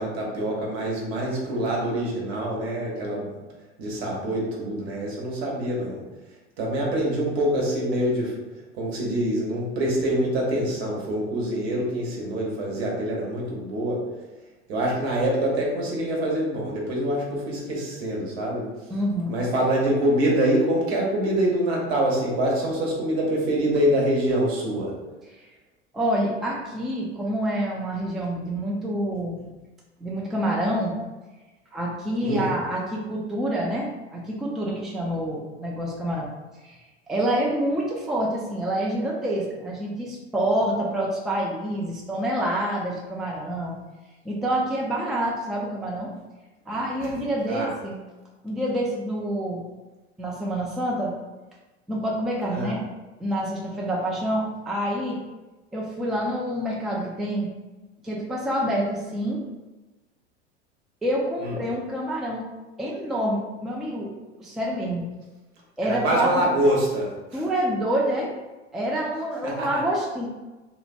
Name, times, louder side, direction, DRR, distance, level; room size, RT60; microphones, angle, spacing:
voice 1, 0.0-3.3 3.8-6.0 6.6-8.3 8.7-14.0 14.7-18.7 19.3-24.9 32.2-32.5 47.0-47.2 47.5-47.7 52.5-52.7 61.4-61.6 65.8-67.4 69.4-69.8, right 1 dB, 65° right, -3 dB, 1.0 m, -25 dB
voice 2, 18.9-19.3 25.3-25.5 25.9-29.4 30.0-31.0 31.7-36.3 36.6-36.8 37.1-43.7 44.2-46.1 46.7-48.0 48.4-49.6 50.2-51.1 51.9-52.8 53.2-55.2 55.7-57.5 58.0-59.4 61.0-62.4 62.8-64.1 64.4-65.1 65.8-66.4 67.3-68.3 68.7-70.3, right 1 dB, ahead, -3 dB, 0.4 m, -27 dB
2.8 x 2.1 x 2.5 m, 1.2 s
hypercardioid pair, 80°, 34 cm